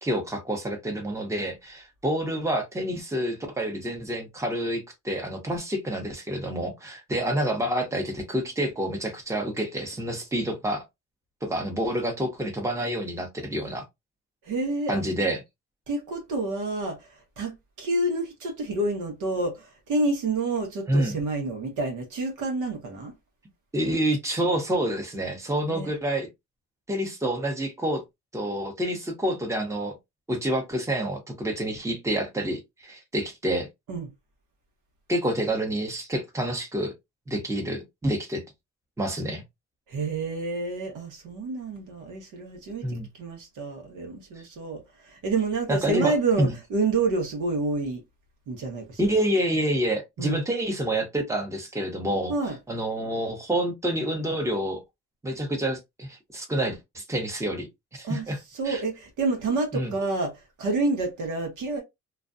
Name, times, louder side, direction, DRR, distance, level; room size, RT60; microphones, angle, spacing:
voice 1, 0.0-10.8 11.4-13.8 14.9-15.4 20.9-21.2 23.7-26.3 26.9-28.0 28.3-30.0 30.3-33.7 35.1-36.9 37.3-38.4 39.0-39.4 42.8-43.1 45.7-46.5 49.0-52.3 52.7-54.8 55.2-57.7 57.9-58.4 58.7-58.8 59.7-59.9, right 1 dB, 10° right, 0.8 m, -28 dB
voice 2, 14.4-15.0 15.9-23.1 25.7-25.9 33.9-34.1 39.9-48.0 48.5-49.1 50.2-50.4 52.3-52.6 58.0-58.2 58.5-61.8, right 3 dB, 85° right, 1.1 m, -29 dB
2.5 x 2.2 x 2.5 m
cardioid pair, 90°, 30 cm